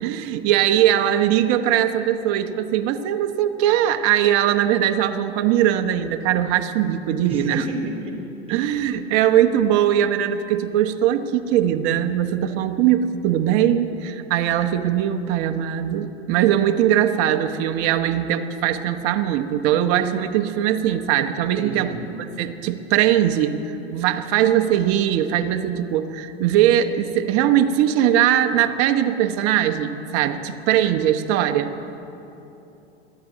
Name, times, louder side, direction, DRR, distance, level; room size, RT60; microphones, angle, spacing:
voice 1, 0.0-7.7 8.5-31.7, right 11 dB, 50° right, 7 dB, 1.0 m, -20 dB
voice 2, 7.2-8.2 8.5-8.8 21.6-22.0, right 2 dB, 20° right, 1 dB, 3.7 m, -30 dB
22.5 x 14.0 x 4.1 m, 3.0 s
hypercardioid pair, 90°, 32 cm